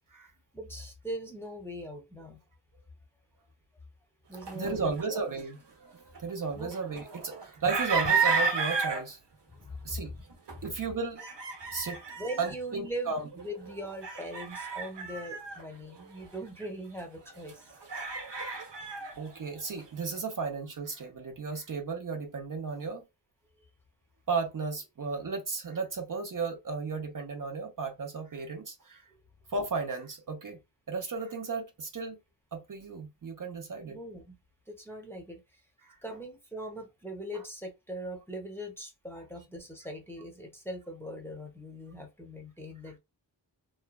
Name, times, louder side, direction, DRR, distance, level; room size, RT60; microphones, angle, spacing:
voice 1, 0.5-2.4 4.3-5.2 6.6-6.7 9.5-10.2 10.5-10.7 11.6-11.7 12.2-17.7 29.1-29.2 33.8-34.4 34.7-35.6 36.0-43.0, equal, 5° left, 0.8 m, -41 dB
sound 1, 4.3-5.4 6.1-9.0 10.3-10.7 11.2-12.5 13.3-15.6 15.9-16.7 17.0-19.1, right 5 dB, 75° right, 0.9 m, -32 dB
voice 2, 4.5-5.6 6.2-9.2 9.8-10.1 10.6-11.2 11.7-12.0 12.4-13.2 18.5-18.6 19.2-23.0 24.3-29.0 29.5-30.6 30.9-32.2 32.5-34.0 35.8-35.9, right 4 dB, 45° right, 0.7 m, -34 dB
3.1 x 2.2 x 2.2 m
wide cardioid pair, 85°, 43 cm